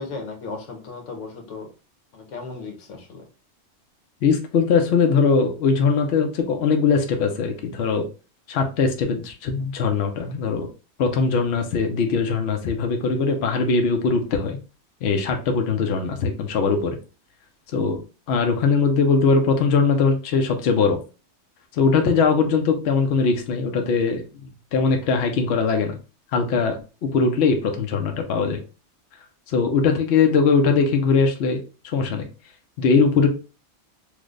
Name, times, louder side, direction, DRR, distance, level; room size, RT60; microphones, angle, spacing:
voice 1, 0.0-1.7 2.1-3.3, left 4 dB, 85° left, 2 dB, 1.2 m, -35 dB
voice 2, 4.2-8.1 8.5-10.7 11.0-14.6 15.0-17.0 17.7-18.0 18.3-21.0 21.7-24.2 24.7-26.0 26.3-28.6 29.5-31.6 31.9-32.3 32.8-33.3, left 5 dB, 65° left, 4 dB, 0.8 m, -21 dB
3.2 x 2.1 x 3.6 m, 0.33 s
omnidirectional pair, 1.2 m